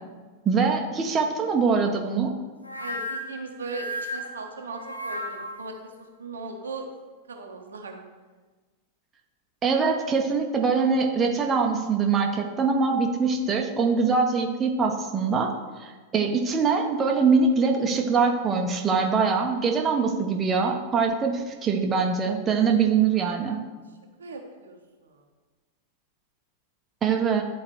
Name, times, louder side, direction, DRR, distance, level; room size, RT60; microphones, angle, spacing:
voice 1, 0.5-2.3 9.6-15.5 15.8-23.6 27.0-27.4, right 5 dB, 25° right, 2 dB, 0.7 m, -23 dB
sound 1, 2.6-5.7, equal, 85° left, 0.6 m, -34 dB
voice 2, 2.8-6.9 7.3-8.1 23.8-25.2, right 3 dB, 70° right, 3 dB, 0.8 m, -38 dB
10.5 x 4.0 x 3.1 m, 1.3 s
figure-of-eight pair, 90°, 0 cm